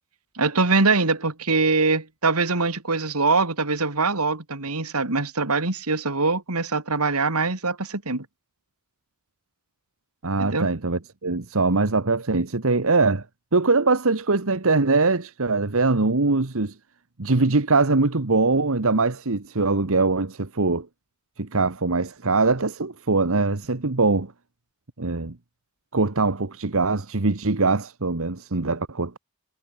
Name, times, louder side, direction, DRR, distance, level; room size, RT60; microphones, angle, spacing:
voice 1, 0.3-8.3 10.4-10.7, right 3 dB, 85° right, 2.8 m, -23 dB
voice 2, 10.2-13.2 13.5-16.8 17.2-20.9 21.4-24.3 25.0-25.4 25.9-29.2, right 3 dB, 65° right, 1.4 m, -22 dB
head